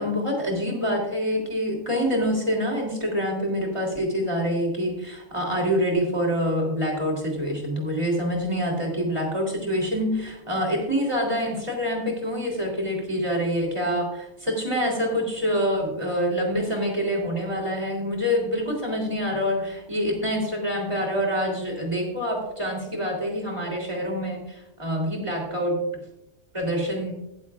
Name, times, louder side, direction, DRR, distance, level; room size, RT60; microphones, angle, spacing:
voice 1, 0.0-25.8 26.5-27.1, equal, 20° right, 0 dB, 3.5 m, -26 dB
22.5 x 7.6 x 2.4 m, 0.86 s
omnidirectional pair, 1.5 m